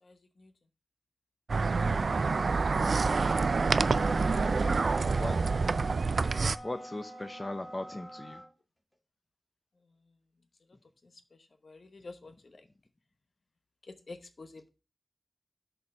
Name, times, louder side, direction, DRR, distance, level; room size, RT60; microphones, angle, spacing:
voice 1, 0.0-0.5 9.8-10.1 11.0-12.7 13.8-14.7, left 3 dB, 65° left, 0.9 m, -50 dB
sound 1, 1.5-6.6, right 4 dB, 75° right, 0.3 m, -27 dB
sound 2, 3.9-8.5, equal, 10° left, 2.0 m, -44 dB
voice 2, 5.2-5.5 6.6-8.4, left 2 dB, 30° left, 0.5 m, -38 dB
6.4 x 4.5 x 5.3 m
wide cardioid pair, 90°, 0 cm